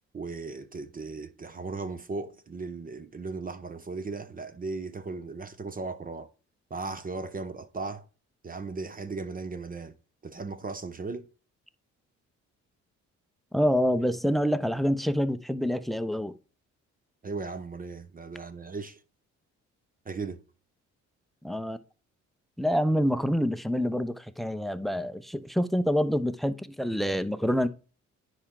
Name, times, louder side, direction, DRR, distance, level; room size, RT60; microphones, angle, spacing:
voice 1, 0.1-6.3 6.7-8.0 8.4-9.9 10.2-11.3 17.2-19.0 20.1-20.4, right 4 dB, 30° right, 0.8 m, -37 dB
voice 2, 13.5-16.4 21.4-21.8 22.6-27.7, equal, ahead, 0.6 m, -27 dB
9.8 x 4.4 x 3.7 m
cardioid pair, 90°, 30 cm